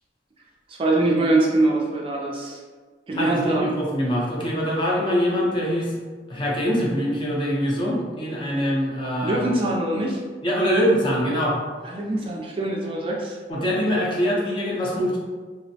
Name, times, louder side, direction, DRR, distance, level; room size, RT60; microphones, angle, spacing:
voice 1, 0.7-2.6 3.1-3.7 9.2-10.2 11.8-13.4, right 2 dB, 30° right, -2 dB, 0.3 m, -23 dB
voice 2, 3.1-5.9 6.3-9.4 10.4-11.6 13.5-15.2, equal, 30° left, -4 dB, 0.5 m, -23 dB
2.5 x 2.0 x 2.6 m, 1.5 s
head